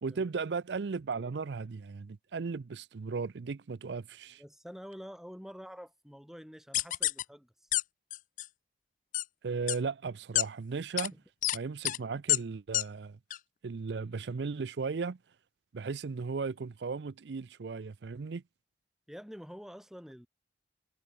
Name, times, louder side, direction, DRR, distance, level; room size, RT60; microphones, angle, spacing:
voice 1, 0.0-4.4 9.4-11.1 11.5-13.2 13.6-15.2 15.7-18.4, right 4 dB, 75° right, 0.5 m, -36 dB
voice 2, 4.4-7.7 10.9-11.2 19.1-20.3, equal, ahead, 2.7 m, -48 dB
sound 1, 6.7-7.2 7.7-7.8 8.1-8.5 9.1-9.2 9.7-9.8 10.4-10.5 11.0-11.1 11.4-11.6 11.8-12.0 12.3-12.4 12.7-12.8 13.3-13.4, left 15 dB, 45° left, 0.3 m, -28 dB
head